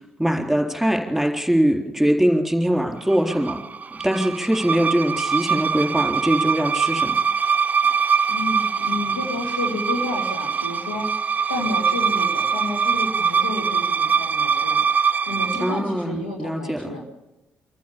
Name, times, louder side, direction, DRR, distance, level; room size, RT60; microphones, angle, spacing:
voice 1, 0.2-3.6 4.0-7.1 15.6-17.0, equal, ahead, 2 dB, 4.1 m, -22 dB
sound 1, 3.1-15.8, right 6 dB, 30° right, 0.6 m, -23 dB
voice 2, 8.3-11.1 11.5-14.8 15.3-17.0, left 2 dB, 85° left, 1 dB, 2.2 m, -30 dB
24.5 x 15.0 x 7.1 m, 1.0 s
figure-of-eight pair, 40°, 5 cm